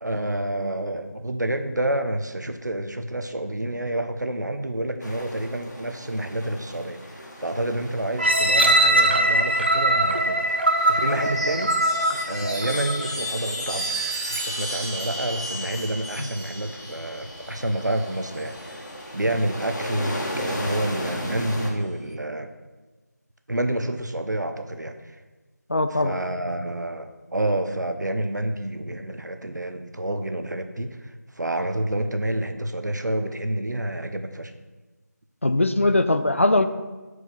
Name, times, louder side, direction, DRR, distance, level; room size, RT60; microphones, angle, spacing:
voice 1, 0.0-11.7 12.1-14.0 14.3-18.9 19.1-22.5 23.5-25.2 25.9-34.5, right 1 dB, 70° right, 7 dB, 0.8 m, -29 dB
sound 1, 5.0-21.7, equal, 70° left, 1.9 m, -37 dB
sound 2, 8.2-13.1 13.7-13.8, right 1 dB, 35° right, 0.5 m, -21 dB
Chime, 11.1-18.9 20.2-20.8, right 1 dB, 20° left, 1.3 m, -34 dB
voice 2, 25.7-26.2 35.4-36.7, left 2 dB, 45° left, 10 dB, 0.4 m, -20 dB
5.2 x 4.7 x 5.8 m, 1.2 s
figure-of-eight pair, 165°, 10 cm